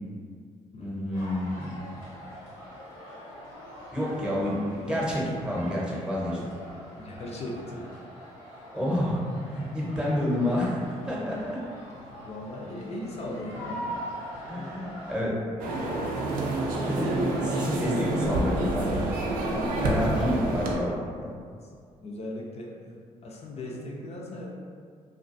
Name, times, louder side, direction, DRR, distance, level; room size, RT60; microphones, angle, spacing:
voice 1, 0.8-1.8 3.9-6.4 8.7-9.2 9.5-10.8 11.1-11.6 14.5-15.3 16.7-19.1 19.5-20.9 21.2-21.3, left 1 dB, 5° right, -5 dB, 0.8 m, -29 dB
sound 1, 1.1-15.2, equal, 85° left, 0.7 m, -43 dB
voice 2, 7.0-7.9 12.2-13.9 14.5-14.7 21.6-21.7 22.0-22.8 23.2-24.6, left 1 dB, 40° left, -2 dB, 0.5 m, -38 dB
sound 2, 15.6-20.8, right 2 dB, 65° right, 0.4 m, -28 dB
2.3 x 2.2 x 2.5 m, 2.1 s
hypercardioid pair, 55°, 16 cm